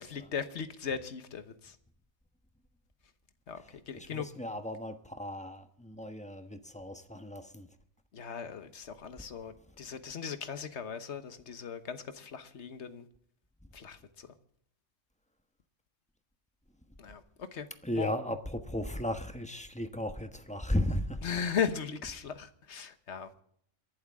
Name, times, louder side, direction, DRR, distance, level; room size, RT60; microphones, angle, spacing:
voice 1, 0.0-1.8 3.5-4.3 8.1-13.1 13.7-14.3 17.0-17.7 18.0-18.1 21.2-23.4, left 7 dB, 60° left, 10 dB, 1.4 m, -38 dB
voice 2, 3.9-7.7 17.8-21.2, left 1 dB, 5° left, 7 dB, 1.1 m, -35 dB
28.0 x 11.5 x 3.6 m, 0.68 s
omnidirectional pair, 1.3 m